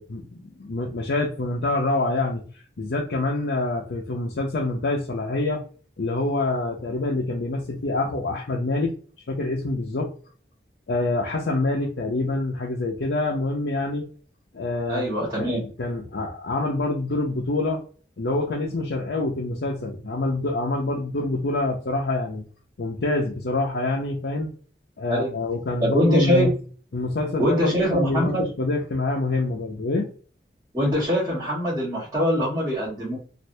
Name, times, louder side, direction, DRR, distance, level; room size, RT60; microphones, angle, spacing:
voice 1, 0.0-5.6 6.0-8.9 9.3-10.1 10.9-14.1 14.5-17.8 18.2-22.4 22.8-24.5 25.0-26.5 26.9-30.1, left 2 dB, 75° left, -1 dB, 0.6 m, -26 dB
voice 2, 14.9-15.6 25.1-25.3 25.8-26.5 27.4-28.4 30.7-33.2, equal, 15° right, -10 dB, 1.2 m, -23 dB
3.2 x 2.5 x 2.6 m, 0.41 s
head